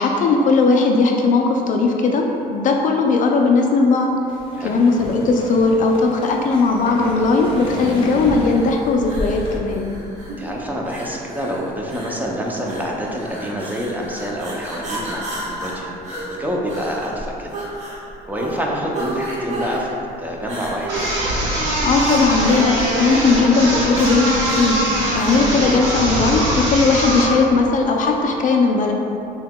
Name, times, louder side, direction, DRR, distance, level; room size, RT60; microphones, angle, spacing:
voice 1, 0.0-4.1 4.6-9.9 21.8-24.8 25.1-28.9, left 3 dB, 50° left, 2 dB, 0.4 m, -17 dB
sound 1, 4.3-9.6, left 1 dB, 35° left, 0.7 m, -31 dB
sound 2, 7.6-25.5, right 1 dB, 45° right, 1.0 m, -33 dB
voice 2, 10.4-15.9 16.3-17.5 18.3-21.0, equal, 10° right, -2 dB, 0.5 m, -27 dB
sound 3, 20.9-27.4, right 1 dB, 80° right, 1.2 m, -21 dB
5.6 x 2.8 x 2.2 m, 2.8 s
cardioid pair, 110°, 17 cm